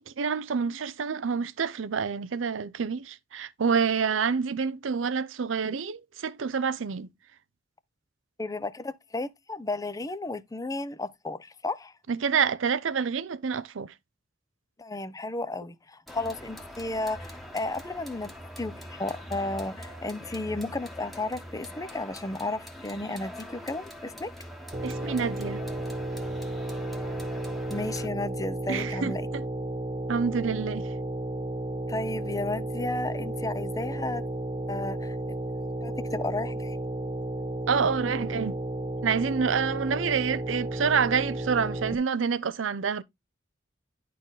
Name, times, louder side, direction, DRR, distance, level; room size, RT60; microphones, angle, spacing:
voice 1, 0.0-7.1 12.1-13.9 24.8-25.6 28.7-29.4 30.1-30.9 37.7-38.6 39.0-43.0, right 6 dB, 80° right, 0.6 m, -28 dB
voice 2, 8.4-11.9 14.8-18.3 18.6-24.3 27.7-29.2 31.9-34.2 34.7-35.1 35.8-36.8, left 2 dB, 20° left, 0.6 m, -33 dB
sound 1, 16.1-28.1, equal, ahead, 1.2 m, -43 dB
sound 2, 24.7-41.9, right 1 dB, 25° right, 0.7 m, -33 dB
10.5 x 4.2 x 3.8 m
head